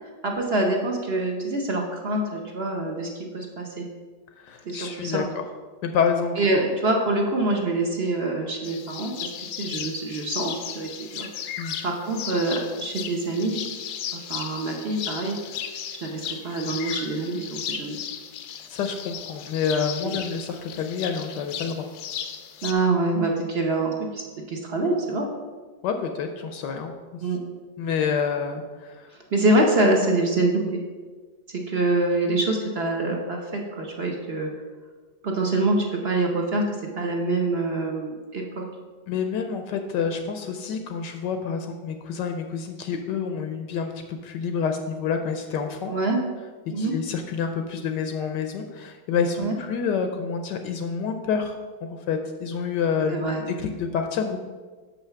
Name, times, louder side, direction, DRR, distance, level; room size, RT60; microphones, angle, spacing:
voice 1, 0.0-3.9 4.6-5.2 6.4-9.3 9.6-11.3 11.8-13.6 14.1-15.3 16.0-18.0 22.6-25.3 27.2-27.4 29.3-30.8 31.5-34.5 35.2-38.6 45.9-46.2 46.7-46.9 49.4-49.5 53.1-53.4, right 2 dB, 50° right, 1 dB, 0.8 m, -25 dB
voice 2, 4.4-5.4 5.8-6.3 11.6-11.8 18.7-21.8 25.8-26.9 27.8-29.1 39.1-45.9 46.8-51.5 51.8-53.3 53.6-54.4, left 6 dB, 70° left, 6 dB, 1.2 m, -28 dB
sound 1, 8.6-22.7, left 9 dB, 90° left, 1.4 m, -35 dB
6.6 x 5.7 x 5.7 m, 1.4 s
omnidirectional pair, 2.1 m